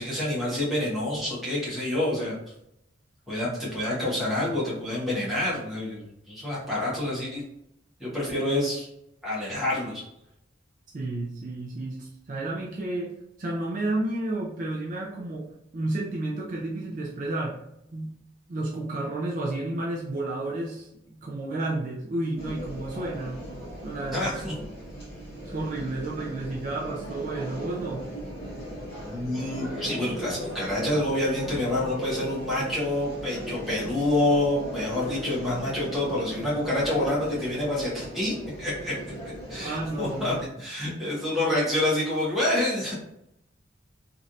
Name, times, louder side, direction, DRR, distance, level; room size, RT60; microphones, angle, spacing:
voice 1, 0.0-2.4 3.3-7.4 8.0-8.9 9.2-10.0 24.1-24.5 29.0-39.1 39.5-42.9, left 1 dB, ahead, -8 dB, 1.1 m, -27 dB
voice 2, 10.9-17.6 17.9-18.2 18.5-23.5 23.8-24.7 25.5-28.1 39.6-40.4, right 2 dB, 40° right, -3 dB, 0.4 m, -31 dB
sound 1, 22.4-40.5, equal, 30° left, 1.3 m, -38 dB
3.1 x 2.5 x 2.6 m, 0.80 s
head